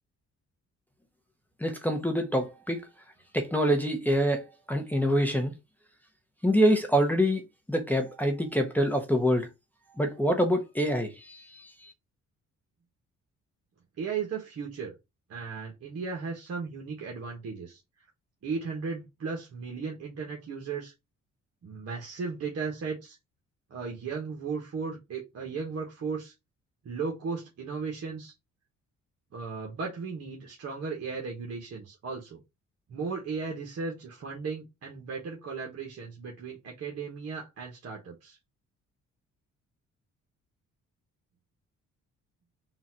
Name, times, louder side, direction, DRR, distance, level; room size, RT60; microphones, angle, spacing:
voice 1, 1.6-2.8 3.3-5.5 6.4-7.4 7.7-9.5 10.0-11.4, equal, 5° left, 0.8 m, -25 dB
voice 2, 14.0-14.9 15.3-17.8 18.4-20.9 21.6-23.2 23.7-26.3 26.8-28.3 29.3-32.4 32.9-38.4, right 5 dB, 55° right, 1.2 m, -36 dB
3.9 x 2.4 x 4.3 m
cardioid pair, 90°, 30 cm